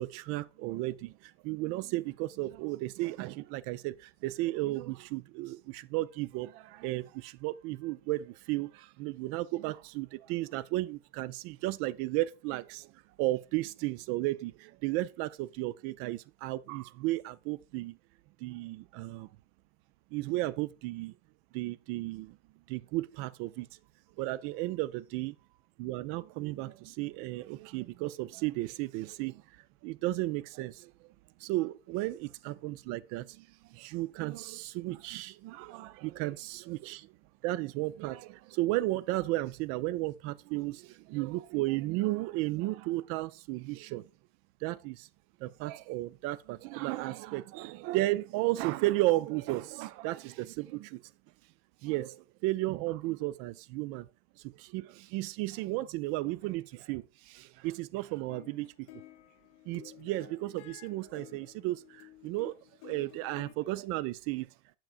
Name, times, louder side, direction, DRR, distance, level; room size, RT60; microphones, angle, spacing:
voice 1, 0.0-12.9 13.2-18.0 18.4-19.3 20.1-21.1 21.5-22.4 22.7-23.7 24.2-25.3 25.8-29.4 29.8-31.1 31.4-37.1 37.4-44.1 44.6-45.1 45.4-51.0 51.8-54.1 54.4-58.9 59.7-62.5 62.8-64.5, right 18 dB, 40° right, 0.4 m, -34 dB
sound 1, 58.2-63.5, left 13 dB, 50° left, 0.7 m, -53 dB
6.9 x 5.8 x 2.4 m
figure-of-eight pair, 80°, 35 cm